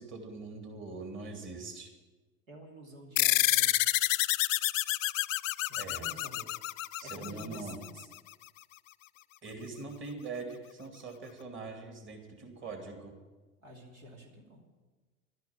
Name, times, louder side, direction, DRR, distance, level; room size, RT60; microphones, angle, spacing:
voice 1, 0.0-1.9 5.7-6.0 7.0-7.8 9.4-13.1, right 3 dB, 30° right, 3 dB, 2.7 m, -42 dB
voice 2, 2.5-3.8 5.7-6.5 7.0-8.1 13.6-14.6, right 1 dB, 80° right, -1 dB, 2.9 m, -49 dB
sound 1, 3.2-8.0, left 16 dB, 70° left, 0.5 m, -28 dB
12.0 x 10.5 x 7.3 m, 1.2 s
figure-of-eight pair, 80°, 40 cm